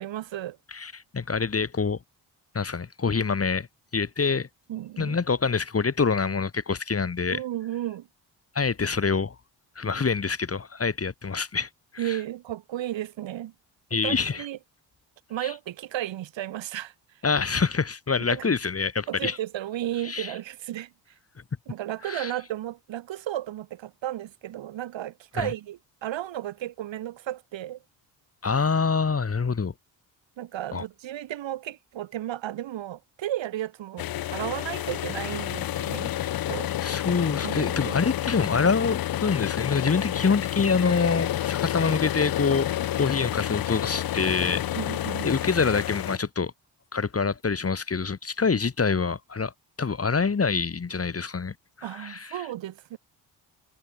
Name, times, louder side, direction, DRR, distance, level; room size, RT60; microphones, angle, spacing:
voice 1, 0.0-0.6 4.7-5.2 7.3-8.1 12.0-13.5 13.9-14.6 15.3-16.9 18.3-18.5 19.1-20.9 21.7-27.8 30.4-36.1 36.5-36.7 37.4-38.1 44.7-45.3 51.8-53.0, right 13 dB, 65° right, 1.5 m, -34 dB
voice 2, 0.7-2.0 2.5-3.7 3.9-4.5 5.0-7.4 8.5-9.3 9.7-12.2 13.9-14.4 15.4-15.5 17.2-19.4 20.0-20.3 22.1-22.3 25.3-25.5 28.4-29.7 30.7-30.8 36.8-44.6 45.2-46.5 46.9-49.5 49.8-52.4, left 5 dB, 30° left, 1.6 m, -26 dB
sound 1, 34.0-46.2, left 13 dB, 45° left, 0.7 m, -29 dB
hypercardioid pair, 50°, 50 cm